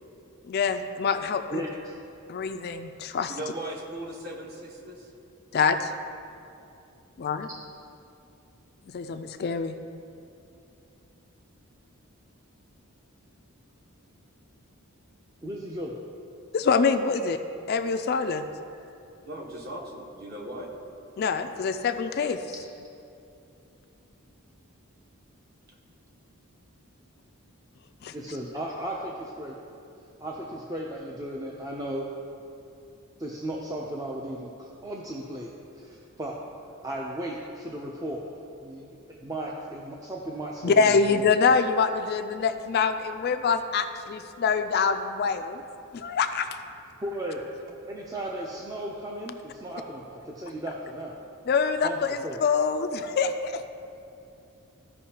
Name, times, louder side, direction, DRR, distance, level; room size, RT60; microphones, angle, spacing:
voice 1, 0.5-1.6 2.3-3.4 5.5-5.9 7.2-7.5 8.9-9.8 16.5-17.4 17.7-18.5 21.2-22.4 28.0-28.1 40.6-45.6 45.9-46.5 51.5-53.7, left 5 dB, 45° left, 8 dB, 0.3 m, -25 dB
voice 2, 3.3-5.1 19.2-20.7, right 1 dB, 45° right, -2 dB, 1.2 m, -38 dB
voice 3, 15.4-15.9 28.1-29.6 30.2-32.1 33.2-35.5 35.8-36.4 36.8-38.2 38.6-41.6 47.0-47.4 47.9-51.1 51.8-52.4, right 1 dB, 15° right, -2 dB, 0.5 m, -35 dB
14.5 x 5.4 x 2.9 m, 2.7 s
head